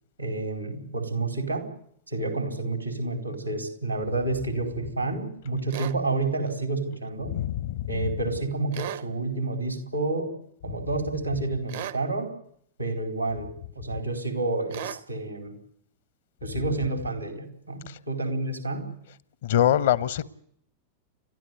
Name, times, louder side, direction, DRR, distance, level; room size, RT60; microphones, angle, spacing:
voice 1, 0.2-1.7 2.1-7.3 7.9-10.3 10.6-12.3 12.8-15.6 16.4-18.9, right 2 dB, 90° right, 4.2 m, -29 dB
sound 1, 5.7-6.0 8.7-9.1 11.7-12.0 14.7-15.0, right 11 dB, 60° right, 0.9 m, -35 dB
voice 2, 7.3-7.9 17.9-18.0 19.4-20.2, left 11 dB, 60° left, 0.9 m, -24 dB
29.5 x 12.5 x 9.4 m
figure-of-eight pair, 90°, 0 cm